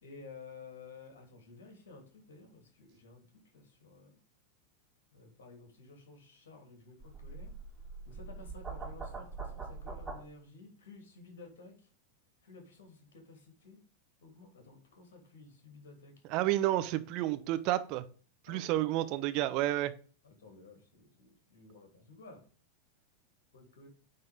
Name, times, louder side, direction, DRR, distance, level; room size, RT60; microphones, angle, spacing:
voice 1, 0.0-3.2 3.5-4.2 5.1-7.5 8.1-11.7 12.4-13.8 14.2-16.1 18.5-18.7 20.2-22.4 23.5-23.9, left 4 dB, 60° left, 3 dB, 3.0 m, -53 dB
sound 1, 7.0-10.2, right 4 dB, 10° right, 2.3 m, -43 dB
voice 2, 16.3-18.0 18.4-19.9, right 14 dB, 40° right, 11 dB, 0.7 m, -30 dB
9.0 x 3.9 x 5.1 m, 0.40 s
figure-of-eight pair, 90°, 0 cm